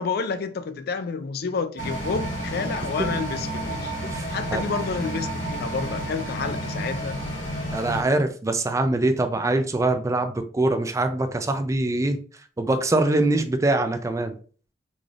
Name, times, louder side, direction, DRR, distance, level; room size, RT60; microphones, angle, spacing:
voice 1, 0.0-3.9 4.3-7.2, left 5 dB, 55° left, 0.4 m, -29 dB
sound 1, 1.8-8.0, right 1 dB, 85° left, 1.9 m, -30 dB
voice 2, 7.7-12.2 12.6-14.4, right 2 dB, 15° right, 0.4 m, -23 dB
3.9 x 3.3 x 2.4 m
head